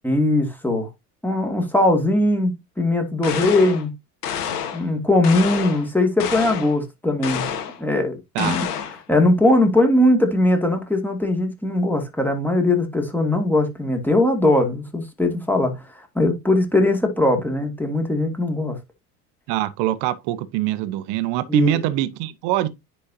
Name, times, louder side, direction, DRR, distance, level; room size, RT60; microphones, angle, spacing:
voice 1, 0.0-0.9 1.2-3.9 4.7-7.5 7.8-8.7 9.1-15.8 16.2-18.8 21.5-21.8, left 1 dB, 5° left, 2.3 m, -20 dB
sound 1, 3.2-3.8 4.2-4.9 5.2-5.9 6.2-6.8 7.2-7.8 8.4-9.0, left 8 dB, 80° left, 1.7 m, -28 dB
voice 2, 19.5-22.7, right 14 dB, 60° right, 1.2 m, -23 dB
10.0 x 4.5 x 2.8 m
hypercardioid pair, 80°, 46 cm